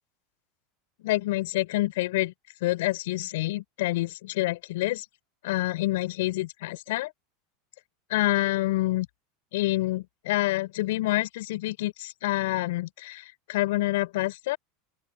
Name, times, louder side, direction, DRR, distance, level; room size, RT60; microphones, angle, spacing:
voice 1, 1.0-2.3 2.6-5.0 5.4-7.1 8.1-9.1 9.5-13.2 13.5-14.6, left 18 dB, 75° left, 6.1 m, -27 dB
open air
supercardioid pair, 120°, 0 cm